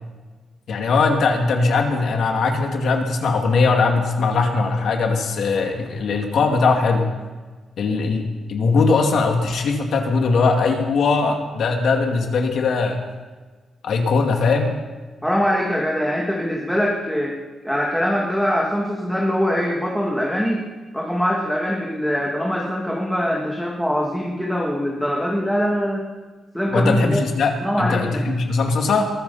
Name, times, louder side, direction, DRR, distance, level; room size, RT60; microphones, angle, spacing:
voice 1, 0.7-7.1 7.8-13.0 13.8-14.8 26.7-29.1, left 4 dB, 65° left, 3 dB, 2.4 m, -20 dB
voice 2, 15.2-17.4 17.6-20.6 20.9-26.1 26.5-27.2 27.6-28.3, equal, ahead, -2 dB, 1.7 m, -23 dB
22.0 x 14.0 x 4.2 m, 1.3 s
wide cardioid pair, 140°, 0 cm